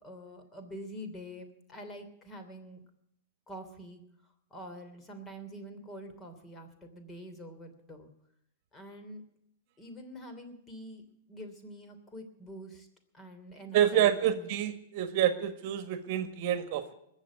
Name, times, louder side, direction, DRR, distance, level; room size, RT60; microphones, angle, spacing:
voice 1, 0.0-2.8 3.5-4.0 4.5-8.1 8.7-9.2 9.8-11.0 11.3-12.9 13.1-14.5, equal, 20° left, 6 dB, 3.0 m, -46 dB
voice 2, 13.7-16.9, right 10 dB, 50° right, 10 dB, 1.4 m, -28 dB
21.0 x 7.3 x 8.4 m, 0.79 s
hypercardioid pair, 120°, 0 cm